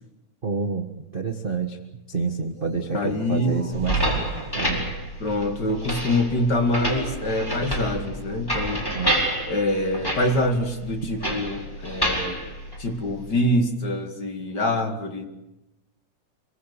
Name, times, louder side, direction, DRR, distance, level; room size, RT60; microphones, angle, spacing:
voice 1, 0.4-1.8 2.1-4.9 8.9-9.2, right 5 dB, 50° right, 5 dB, 0.6 m, -28 dB
sound 1, 2.4-4.7 6.6-8.4 10.0-10.5, right 4 dB, 30° right, 5.2 m, -41 dB
voice 2, 2.9-3.6 5.2-8.9 9.5-12.4 12.8-15.2, left 1 dB, 35° left, 5 dB, 2.3 m, -25 dB
sound 2, 3.7-13.4, right 1 dB, 5° left, 4.5 m, -29 dB
26.5 x 23.0 x 6.8 m, 0.98 s
omnidirectional pair, 3.5 m